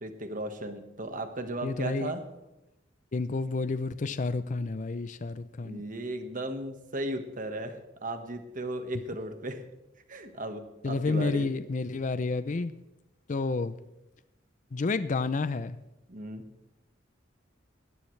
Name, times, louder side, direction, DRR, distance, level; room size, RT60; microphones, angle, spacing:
voice 1, 0.0-2.2 5.6-7.8 8.0-9.6 10.1-11.5 16.1-16.4, right 1 dB, 45° right, 1.5 m, -36 dB
voice 2, 1.6-2.1 3.1-5.8 10.8-12.7 13.3-13.8 14.7-15.8, left 3 dB, 40° left, 0.5 m, -30 dB
19.5 x 14.0 x 3.3 m
head